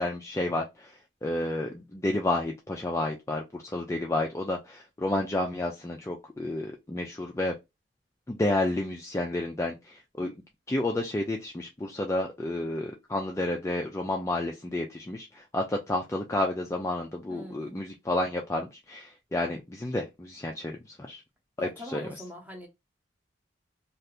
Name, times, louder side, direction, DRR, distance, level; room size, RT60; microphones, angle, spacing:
voice 1, 0.0-7.5 8.3-10.3 10.7-21.2 21.6-22.2, left 1 dB, 15° left, 0.3 m, -31 dB
voice 2, 17.3-17.8 21.6-22.7, left 1 dB, 10° right, 0.8 m, -42 dB
2.7 x 2.4 x 3.3 m
head